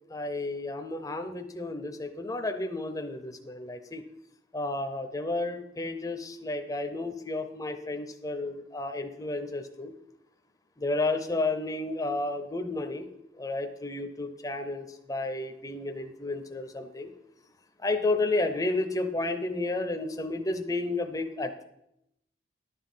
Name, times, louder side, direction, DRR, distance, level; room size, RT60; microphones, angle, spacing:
voice 1, 0.1-4.0 4.5-9.9 10.8-13.1 13.4-17.1 17.8-21.6, left 2 dB, 20° left, 6 dB, 0.7 m, -32 dB
11.0 x 7.3 x 5.6 m, 0.81 s
head